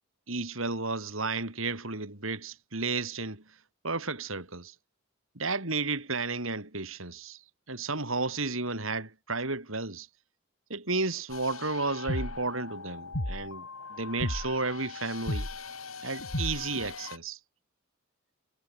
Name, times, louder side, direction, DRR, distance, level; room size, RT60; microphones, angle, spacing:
voice 1, 0.3-3.4 3.8-4.7 5.3-7.4 7.7-10.1 10.7-15.5 16.0-17.4, right 3 dB, 70° right, 4.7 m, -32 dB
sound 1, 11.3-17.2, left 1 dB, 90° left, 4.3 m, -36 dB
head